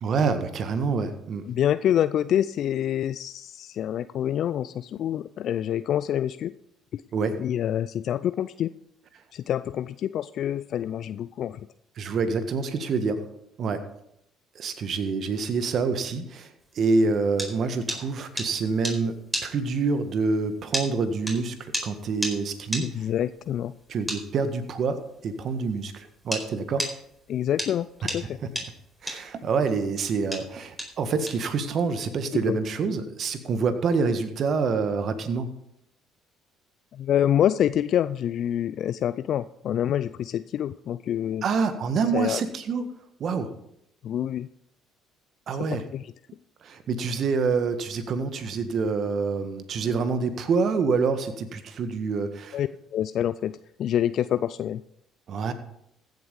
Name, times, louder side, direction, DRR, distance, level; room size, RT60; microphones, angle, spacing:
voice 1, 0.0-1.5 7.1-7.4 12.0-13.2 13.6-13.8 14.5-23.0 23.9-26.9 28.0-28.1 28.4-28.5 29.0-35.5 41.4-42.8 43.2-43.5 45.5-45.8 46.6-52.6 55.3-55.5, right 4 dB, 50° right, 10 dB, 1.6 m, -27 dB
voice 2, 1.5-6.5 6.9-7.0 7.4-8.7 9.3-11.6 22.8-23.7 27.3-28.4 32.5-32.6 36.9-41.4 42.1-42.4 44.0-44.5 45.9-46.1 52.5-54.8, left 10 dB, 55° left, 15 dB, 0.4 m, -26 dB
sound 1, 16.8-26.5 26.8-32.0, equal, 5° right, 4.5 m, -33 dB
15.0 x 8.0 x 5.3 m, 0.77 s
hypercardioid pair, 55°, 0 cm